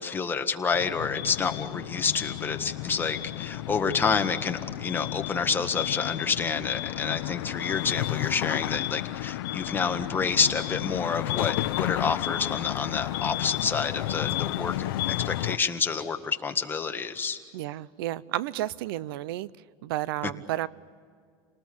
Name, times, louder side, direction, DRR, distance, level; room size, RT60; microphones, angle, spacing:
voice 1, 0.0-17.4, left 5 dB, 15° left, 5 dB, 1.7 m, -28 dB
sound 1, 0.7-15.6, left 15 dB, 85° left, 0.8 m, -32 dB
voice 2, 17.5-19.5 19.8-20.7, right 14 dB, 85° right, 20 dB, 0.7 m, -31 dB
29.5 x 19.5 x 8.7 m, 2.1 s
supercardioid pair, 130°, 12 cm